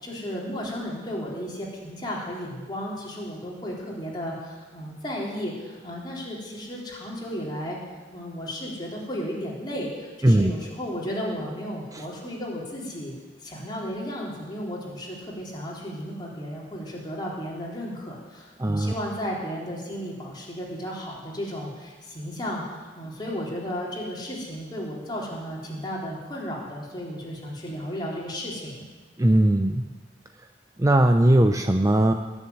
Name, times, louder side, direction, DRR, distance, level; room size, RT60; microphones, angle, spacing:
voice 1, 0.0-7.8 8.1-13.1 13.4-28.9, equal, 25° left, -4 dB, 3.7 m, -34 dB
voice 2, 18.6-18.9 29.2-29.8 30.8-32.1, right 1 dB, 20° right, 6 dB, 0.6 m, -19 dB
19.5 x 7.2 x 9.6 m, 1.3 s
head